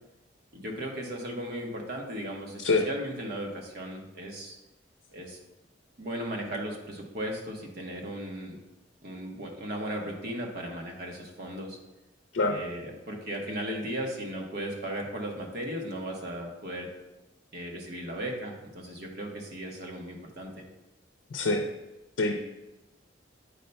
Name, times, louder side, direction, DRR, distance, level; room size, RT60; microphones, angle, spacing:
voice 1, 0.5-4.6 5.1-5.4 6.0-8.6 9.0-11.8 12.5-16.9 17.5-20.6, right 1 dB, 55° right, 1 dB, 1.0 m, -36 dB
voice 2, 21.3-21.7 22.2-22.4, left 3 dB, 80° left, 4 dB, 0.5 m, -25 dB
8.2 x 5.3 x 2.2 m, 1.0 s
head